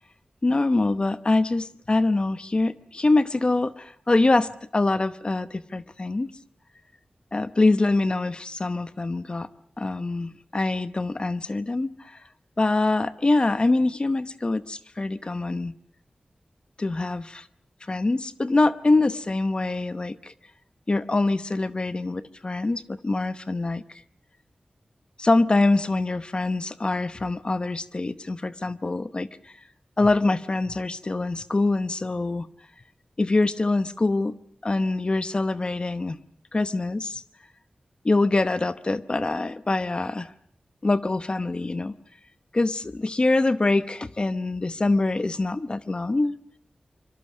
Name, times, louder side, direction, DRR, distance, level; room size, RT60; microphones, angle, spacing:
voice 1, 0.4-6.3 7.3-9.5 9.8-12.2 12.6-15.7 16.8-17.5 17.8-20.3 20.9-23.8 25.2-29.6 30.0-32.5 33.2-34.4 34.6-36.2 36.5-37.2 38.0-40.3 40.8-41.9 42.5-46.4, left 2 dB, 35° left, 13 dB, 0.9 m, -24 dB
26.0 x 25.0 x 6.4 m, 0.62 s
wide cardioid pair, 100°, 3 cm